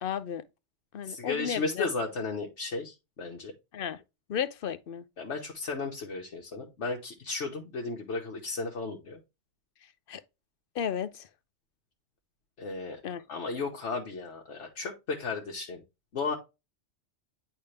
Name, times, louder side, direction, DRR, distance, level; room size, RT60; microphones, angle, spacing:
voice 1, 0.0-0.4 0.9-1.9 3.7-4.0 4.3-5.0 10.1-10.2 10.7-11.3 13.0-13.2, left 8 dB, 60° left, 0.7 m, -33 dB
voice 2, 1.0-3.5 5.2-9.2 12.6-13.0 13.3-15.8 16.1-16.4, left 3 dB, 75° left, 1.4 m, -34 dB
10.0 x 3.4 x 3.2 m
omnidirectional pair, 1.2 m